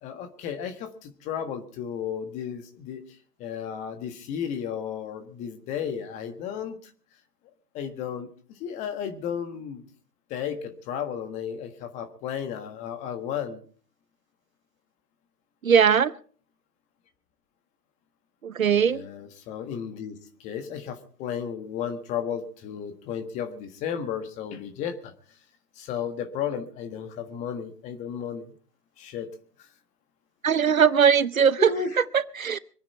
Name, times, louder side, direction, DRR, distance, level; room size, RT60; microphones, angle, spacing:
voice 1, 0.0-3.0 3.4-6.8 7.7-9.8 10.3-13.6 18.7-20.1 20.4-25.1 25.8-28.5 29.0-29.3 30.6-30.8 31.6-32.0, left 8 dB, 15° left, 8 dB, 1.4 m, -33 dB
voice 2, 15.6-16.1 18.4-19.0 30.4-31.7 32.1-32.6, right 7 dB, 60° right, 19 dB, 0.8 m, -20 dB
25.5 x 9.6 x 4.4 m, 0.44 s
figure-of-eight pair, 130°, 47 cm